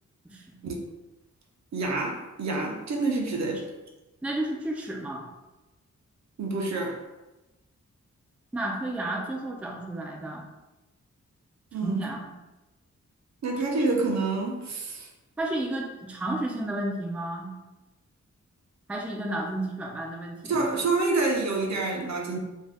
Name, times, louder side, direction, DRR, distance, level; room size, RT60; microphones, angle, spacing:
voice 1, 0.2-0.6 4.2-5.3 8.5-10.5 11.8-12.3 13.8-13.9 15.4-17.5 18.9-20.8, right 1 dB, 5° right, 0 dB, 0.3 m, -32 dB
voice 2, 1.7-3.7 6.4-7.0 11.7-12.1 13.4-15.1 20.4-22.4, right 3 dB, 65° right, 1 dB, 0.6 m, -27 dB
2.6 x 2.2 x 3.3 m, 1.0 s
wide cardioid pair, 110°, 29 cm